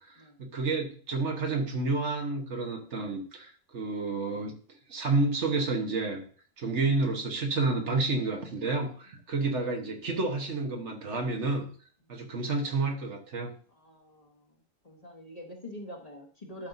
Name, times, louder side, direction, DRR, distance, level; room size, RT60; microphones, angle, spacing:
voice 1, 0.4-4.5 4.9-6.2 6.6-11.7 12.1-13.5, right 3 dB, 65° right, 1 dB, 1.5 m, -30 dB
voice 2, 13.7-14.6 14.8-16.7, left 1 dB, 30° left, 0 dB, 1.4 m, -45 dB
12.0 x 5.4 x 2.7 m, 0.43 s
omnidirectional pair, 1.3 m